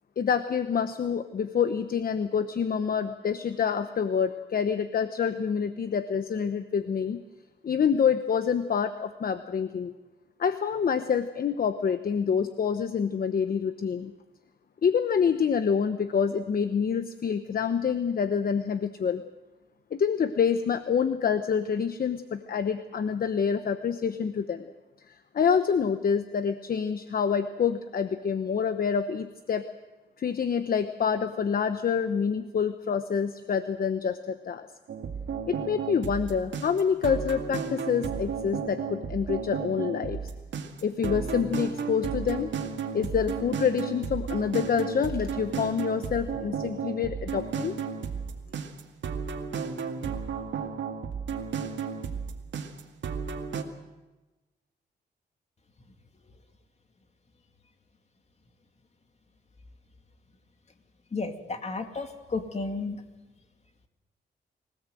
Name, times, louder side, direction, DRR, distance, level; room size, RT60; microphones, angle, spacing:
voice 1, 0.2-7.2 7.6-9.9 10.4-14.1 14.8-19.2 19.9-24.6 25.3-29.6 30.2-34.7 35.5-40.2 40.8-42.5 42.9-47.8, left 6 dB, 50° left, 10 dB, 1.0 m, -27 dB
sound 1, 34.9-53.6, right 6 dB, 80° right, 2.2 m, -33 dB
voice 2, 61.1-63.0, left 3 dB, 35° left, 6 dB, 2.4 m, -33 dB
25.0 x 17.5 x 7.8 m, 1.2 s
cardioid pair, 110°, 19 cm